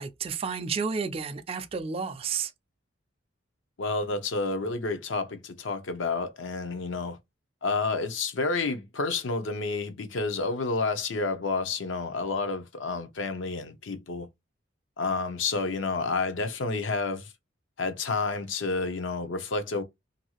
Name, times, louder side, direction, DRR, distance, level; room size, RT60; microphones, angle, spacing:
voice 1, 0.0-2.5, right 5 dB, 30° right, 0.3 m, -31 dB
voice 2, 3.8-7.2 7.6-14.3 15.0-17.3 17.8-19.8, left 3 dB, 75° left, 0.6 m, -30 dB
2.6 x 2.3 x 2.9 m
head